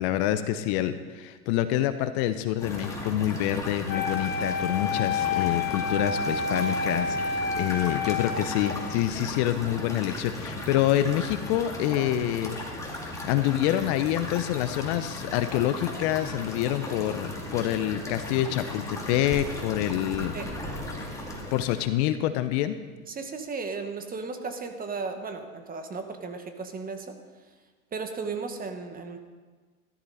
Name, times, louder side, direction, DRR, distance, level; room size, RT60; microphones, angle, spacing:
voice 1, 0.0-12.6 13.2-20.3 21.5-22.7, left 12 dB, 50° left, 11 dB, 0.9 m, -27 dB
sound 1, 2.6-21.8, left 1 dB, 5° left, 2.6 m, -36 dB
Wind instrument woodwind instrument, 3.9-9.0, left 5 dB, 25° left, 1.1 m, -29 dB
voice 2, 23.1-27.1 27.9-29.2, right 4 dB, 20° right, 6 dB, 1.6 m, -35 dB
14.5 x 13.0 x 4.3 m, 1.4 s
hypercardioid pair, 105°, 43 cm